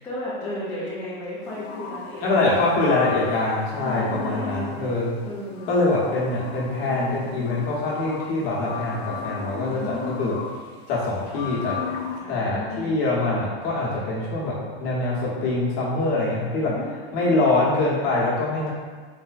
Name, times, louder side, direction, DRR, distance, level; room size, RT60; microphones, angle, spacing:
voice 1, 0.0-2.8 3.8-4.9 5.2-5.8 6.8-7.7 9.7-10.3 12.2-13.0 16.6-17.5, left 1 dB, 10° left, -10 dB, 0.3 m, -35 dB
sound 1, 1.4-12.2, left 6 dB, 80° left, 0.5 m, -37 dB
voice 2, 2.2-5.1 5.7-10.4 10.9-11.8 12.3-14.5 14.8-16.7 17.1-18.7, left 2 dB, 45° left, -5 dB, 1.0 m, -24 dB
3.4 x 2.9 x 2.4 m, 1.5 s
supercardioid pair, 150°, 31 cm